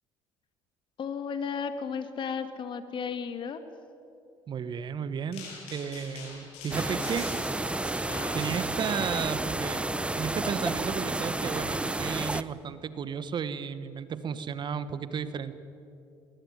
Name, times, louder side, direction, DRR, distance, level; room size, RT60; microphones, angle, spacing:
voice 1, 1.0-3.6, left 6 dB, 50° left, 9 dB, 2.2 m, -34 dB
voice 2, 4.5-7.4 8.3-9.9 10.2-15.5, right 7 dB, 45° right, 13 dB, 1.3 m, -33 dB
sound 1, 5.3-9.3, left 4 dB, 75° left, 7.5 m, -44 dB
sound 2, 6.7-12.4, right 2 dB, 10° right, 0.8 m, -31 dB
19.5 x 18.5 x 9.7 m, 2.7 s
supercardioid pair, 70°, 10 cm